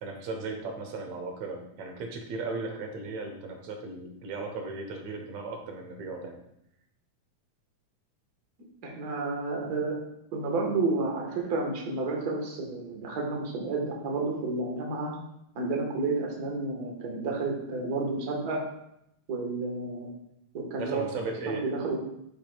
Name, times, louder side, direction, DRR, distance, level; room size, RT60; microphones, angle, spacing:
voice 1, 0.0-6.4 20.8-21.7, right 3 dB, 70° right, 3 dB, 2.1 m, -36 dB
voice 2, 8.8-10.0 10.3-15.1 15.5-18.6 19.3-20.1 20.5-21.1 21.5-22.0, right 3 dB, 45° right, 0 dB, 1.3 m, -31 dB
11.5 x 5.2 x 2.3 m, 0.79 s
omnidirectional pair, 3.5 m